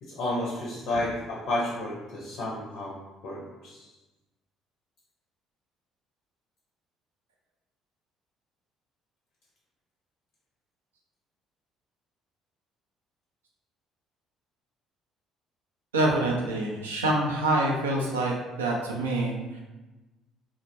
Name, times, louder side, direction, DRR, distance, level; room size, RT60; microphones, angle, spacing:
voice 1, 0.0-3.9, left 1 dB, 60° left, -5 dB, 0.5 m, -32 dB
voice 2, 15.9-19.6, right 2 dB, 80° right, -2 dB, 0.3 m, -26 dB
2.1 x 2.1 x 2.8 m, 1.1 s
figure-of-eight pair, 50°, 0 cm